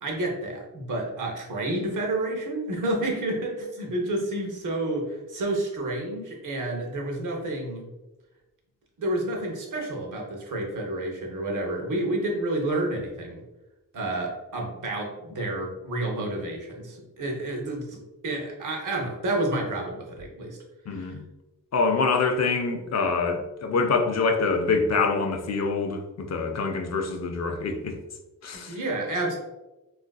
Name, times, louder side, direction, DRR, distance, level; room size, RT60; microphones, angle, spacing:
voice 1, 0.0-7.9 9.0-13.4 13.9-20.6 20.9-21.1 28.5-29.4, right 1 dB, 65° right, 0 dB, 0.7 m, -30 dB
voice 2, 20.9-21.2 21.7-28.0 28.4-28.8, left 4 dB, 55° left, 5 dB, 0.4 m, -25 dB
3.8 x 2.4 x 2.2 m, 1.0 s
wide cardioid pair, 165°, 33 cm